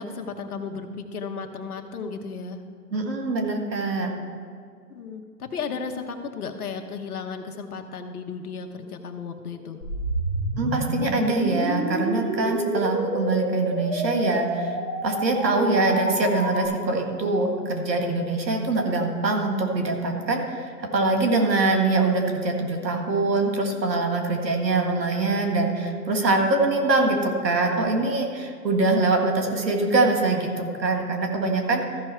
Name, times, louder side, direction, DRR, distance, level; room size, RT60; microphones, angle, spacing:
voice 1, 0.0-2.6 4.9-9.8 18.9-19.1, left 5 dB, 60° left, 5 dB, 1.1 m, -34 dB
voice 2, 2.9-4.1 10.6-14.8 15.0-31.8, right 3 dB, 80° right, 2 dB, 1.9 m, -23 dB
sound 1, 9.8-16.7, right 1 dB, 10° right, 2.9 m, -28 dB
14.0 x 5.8 x 4.5 m, 2.2 s
hypercardioid pair, 145°, 50 cm